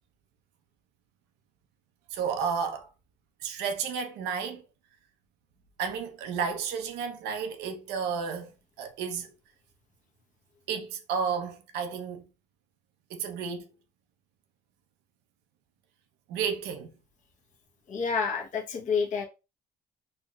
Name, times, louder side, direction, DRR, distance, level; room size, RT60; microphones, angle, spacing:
voice 1, 2.1-2.9 3.4-4.6 5.8-8.5 8.8-9.3 10.7-12.3 13.1-13.7 16.3-16.9, right 6 dB, 85° right, 0.8 m, -32 dB
voice 2, 17.9-19.2, left 5 dB, 45° left, 1.0 m, -29 dB
4.4 x 2.9 x 2.3 m
cardioid pair, 110°, 17 cm